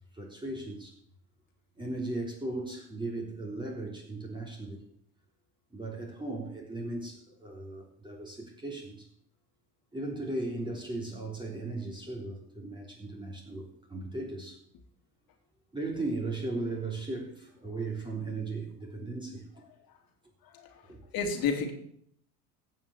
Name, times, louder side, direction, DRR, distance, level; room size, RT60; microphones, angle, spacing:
voice 1, 0.1-0.9 1.8-4.8 5.7-9.1 9.9-14.6 15.7-19.4 20.9-21.0, right 2 dB, 10° right, 3.3 m, -37 dB
voice 2, 20.4-21.7, left 5 dB, 45° left, 3.1 m, -32 dB
16.0 x 5.8 x 8.2 m
hypercardioid pair, 80°, 47 cm